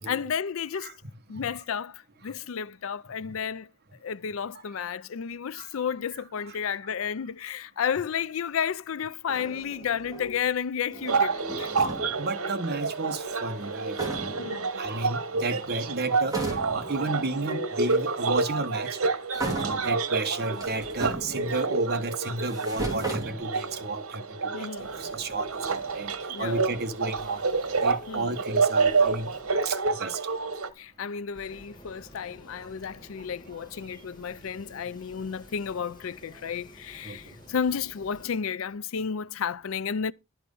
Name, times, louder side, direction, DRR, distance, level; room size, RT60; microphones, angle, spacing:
voice 1, 0.0-0.9 1.3-3.7 4.0-11.7 14.4-14.8 19.6-19.8 24.5-24.9 26.3-26.7 28.1-28.4 30.8-40.1, left 7 dB, 70° left, 0.4 m, -32 dB
sound 1, 9.3-10.5 10.8-12.3 13.6-13.7 13.9-14.6 15.4-15.9 16.3-17.0 17.9-18.0 19.3-20.0 20.5-21.8 22.3-23.9, right 3 dB, 15° right, 3.2 m, -35 dB
sound 2, 11.1-30.7, right 4 dB, 85° right, 1.2 m, -29 dB
voice 2, 12.2-14.4 14.7-19.0 19.4-26.1 26.4-27.4 27.8-29.3 29.6-30.2 36.4-36.5 37.0-37.2, right 2 dB, 50° right, 1.2 m, -33 dB
sound 3, 24.8-38.3, equal, 20° left, 3.4 m, -52 dB
11.5 x 5.9 x 5.4 m
head